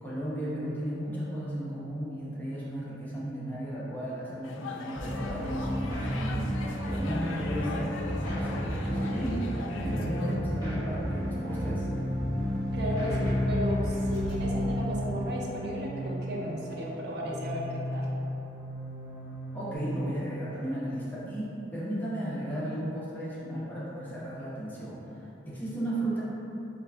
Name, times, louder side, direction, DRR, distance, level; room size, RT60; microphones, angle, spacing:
voice 1, 0.0-11.9 19.5-26.2, right 1 dB, 10° left, -8 dB, 0.6 m, -35 dB
sound 1, 4.4-10.3, left 3 dB, 85° left, 0.4 m, -40 dB
sound 2, 4.9-19.8, equal, 20° right, 1.3 m, -32 dB
voice 2, 12.7-18.1, equal, 60° right, -3 dB, 0.5 m, -34 dB
4.4 x 2.4 x 3.3 m, 2.9 s
head